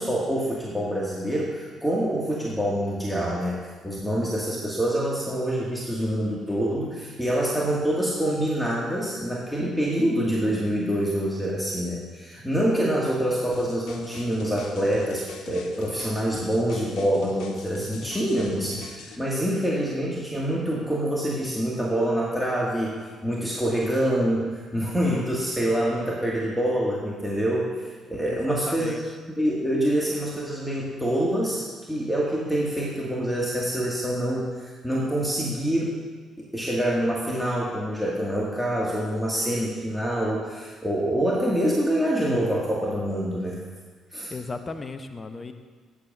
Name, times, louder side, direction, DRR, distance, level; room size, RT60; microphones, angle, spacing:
voice 1, 0.0-3.6 3.8-27.7 28.1-28.9 29.4-36.0 36.4-43.6 44.1-44.3, right 1 dB, ahead, -5 dB, 2.2 m, -26 dB
sound 1, 13.5-19.2, left 6 dB, 60° left, 1.0 m, -43 dB
voice 2, 28.3-29.1 44.3-45.5, left 3 dB, 25° left, 8 dB, 1.0 m, -35 dB
17.0 x 9.7 x 2.7 m, 1.5 s
figure-of-eight pair, 45°, 0 cm